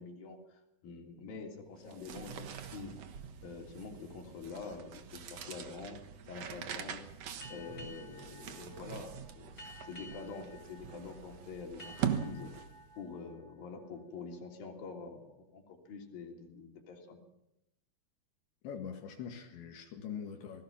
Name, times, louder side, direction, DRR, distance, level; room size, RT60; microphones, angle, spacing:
voice 1, 0.0-3.0 3.4-6.0 6.2-7.1 7.5-12.5 13.0-17.2, left 4 dB, 55° left, 4.8 m, -46 dB
sound 1, 1.8-13.0, right 8 dB, 65° right, 1.6 m, -42 dB
sound 2, 7.4-14.7, left 1 dB, 20° left, 2.5 m, -54 dB
voice 2, 18.6-20.6, left 7 dB, 85° left, 4.1 m, -43 dB
27.5 x 19.0 x 6.0 m
omnidirectional pair, 5.0 m